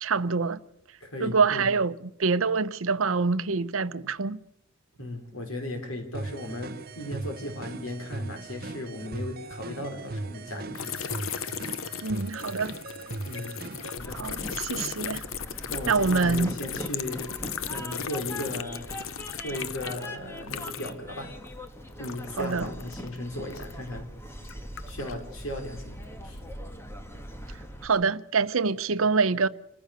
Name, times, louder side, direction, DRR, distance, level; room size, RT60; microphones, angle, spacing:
voice 1, 0.0-0.6 1.2-1.9 2.2-4.4 12.0-12.7 14.2-15.2 15.9-16.5 22.4-22.7 27.8-29.5, right 4 dB, 75° right, 0.8 m, -25 dB
voice 2, 1.0-1.7 5.0-11.3 13.2-13.6 13.8-14.2 15.7-17.2 17.7-18.9 19.4-21.3 22.0-24.1 24.9-26.4, left 1 dB, 85° left, 4.6 m, -36 dB
sound 1, 6.1-14.0, right 2 dB, 45° right, 0.8 m, -38 dB
sound 2, 10.7-21.1 21.4-23.9 24.4-25.2, left 8 dB, 70° left, 0.8 m, -37 dB
Train, 14.0-27.9, equal, 10° left, 1.6 m, -41 dB
27.0 x 14.5 x 6.8 m
head